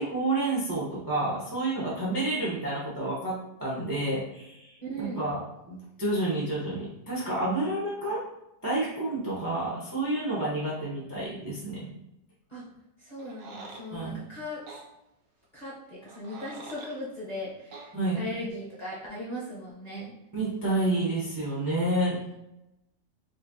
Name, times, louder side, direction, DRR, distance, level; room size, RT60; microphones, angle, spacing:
voice 1, 0.0-3.3 3.6-5.4 5.7-8.2 8.6-11.9 13.9-14.2 17.9-18.2 20.3-22.3, right 2 dB, 25° right, -7 dB, 0.4 m, -29 dB
voice 2, 4.9-5.2 12.5-12.7 13.0-14.6 15.5-20.1, left 1 dB, 30° left, -9 dB, 0.8 m, -38 dB
sound 1, 13.2-13.8 14.7-14.8 16.0-17.0 17.7-17.9, right 3 dB, 65° right, 0.8 m, -45 dB
4.2 x 2.6 x 2.6 m, 0.89 s
omnidirectional pair, 2.0 m